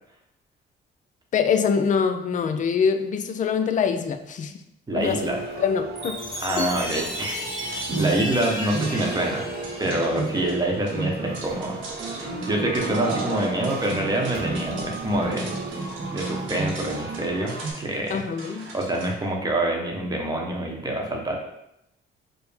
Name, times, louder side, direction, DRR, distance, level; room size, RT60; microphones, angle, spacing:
voice 1, 1.3-4.5 4.9-5.3 5.6-6.2 6.6-6.7 18.1-18.7, left 6 dB, 40° left, 8 dB, 0.4 m, -24 dB
voice 2, 4.9-5.4 6.4-9.4 9.8-11.9 12.2-15.5 16.1-18.2 18.7-21.4, right 1 dB, 20° right, 0 dB, 0.8 m, -26 dB
sound 1, 5.0-17.7, right 3 dB, 55° right, 0.9 m, -32 dB
Chime, 6.0-10.6, equal, 20° left, 1.2 m, -34 dB
sound 2, 7.7-19.1, right 2 dB, 80° right, 0.9 m, -41 dB
4.9 x 2.1 x 3.3 m, 0.83 s
cardioid pair, 90°, 20 cm